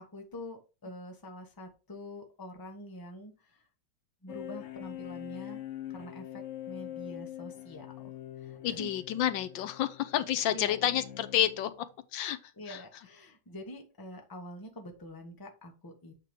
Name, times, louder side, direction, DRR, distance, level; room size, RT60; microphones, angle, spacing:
voice 1, 0.0-3.3 4.2-5.6 5.9-6.3 6.7-7.9 8.4-8.9 10.5-10.8 12.6-16.3, left 1 dB, 15° left, 0.9 m, -45 dB
sound 1, 4.3-11.9, left 13 dB, 60° left, 0.8 m, -44 dB
voice 2, 8.6-11.7 12.1-12.4 12.7-12.8, left 11 dB, 80° left, 1.3 m, -29 dB
8.3 x 3.0 x 5.1 m
omnidirectional pair, 2.1 m